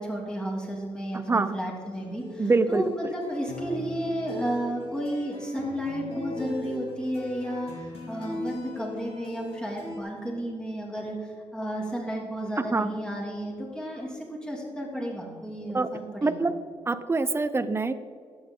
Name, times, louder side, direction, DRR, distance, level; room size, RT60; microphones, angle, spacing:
voice 1, 0.0-16.4, right 1 dB, 5° left, -3 dB, 2.9 m, -32 dB
voice 2, 1.1-1.6 2.4-2.9 12.6-12.9 15.7-15.9 16.2-16.5 16.9-17.9, right 3 dB, 25° right, 12 dB, 0.6 m, -25 dB
sound 1, 1.9-10.0, left 2 dB, 65° left, 2.2 m, -39 dB
12.0 x 8.6 x 3.8 m, 2.1 s
cardioid pair, 95°, 11 cm